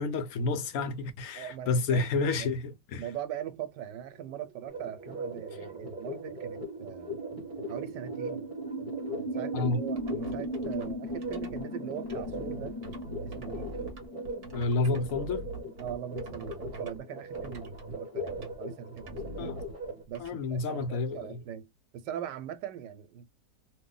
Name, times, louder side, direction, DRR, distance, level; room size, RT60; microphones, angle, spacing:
voice 1, 0.0-3.0 9.5-9.8 14.5-15.4 19.4-19.7 20.2-21.4, left 3 dB, 65° left, 0.9 m, -30 dB
voice 2, 1.3-2.0 2.3-2.5 3.0-7.2 7.7-8.5 9.2-12.8 13.2-13.7 15.8-19.4 20.1-21.7 21.9-23.3, right 10 dB, 80° right, 1.2 m, -41 dB
sound 1, 4.4-16.3, right 1 dB, 35° left, 0.6 m, -39 dB
sound 2, 4.7-20.0, equal, 20° right, 1.3 m, -40 dB
sound 3, 9.7-11.6 12.0-17.0 17.3-17.9 18.3-18.5 19.0-20.3, right 1 dB, 40° right, 1.0 m, -43 dB
3.0 x 2.2 x 3.7 m
omnidirectional pair, 1.8 m